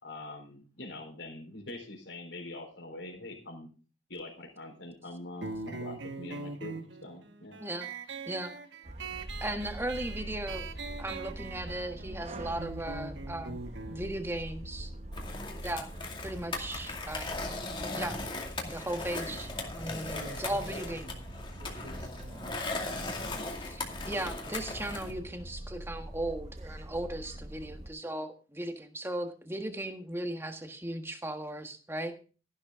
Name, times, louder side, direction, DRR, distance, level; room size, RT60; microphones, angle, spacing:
voice 1, 0.0-3.7 4.1-7.6, left 2 dB, 70° left, 4 dB, 4.0 m, -44 dB
sound 1, 5.4-16.5, right 3 dB, 70° right, 1.4 m, -43 dB
sound 2, 8.8-27.9, right 1 dB, 35° right, 1.0 m, -44 dB
voice 2, 9.1-10.7 11.0-13.6 13.9-14.9 15.6-15.9 16.2-17.3 17.9-18.2 18.6-21.1 23.6-32.1, right 1 dB, 15° right, 6 dB, 1.5 m, -37 dB
Skateboard, 15.1-25.1, left 2 dB, 25° left, 2.3 m, -38 dB
voice 3, 20.1-20.6 20.9-21.2 21.6-22.7, right 1 dB, 85° right, 3 dB, 5.8 m, -48 dB
14.0 x 11.0 x 3.7 m, 0.35 s
head